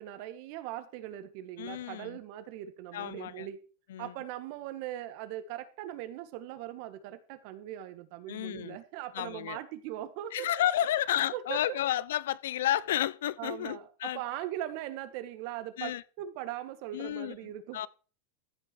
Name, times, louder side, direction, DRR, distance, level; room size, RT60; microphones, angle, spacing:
voice 1, 0.0-3.6 4.0-10.5 11.3-11.8 13.4-17.9, right 13 dB, 55° right, 1.9 m, -40 dB
voice 2, 1.6-2.2 2.9-3.5 3.9-4.1 8.3-8.8 9.1-9.6 10.3-14.2 15.8-16.0 16.9-17.9, left 12 dB, 85° left, 0.7 m, -31 dB
14.5 x 5.9 x 7.1 m
supercardioid pair, 145°, 0 cm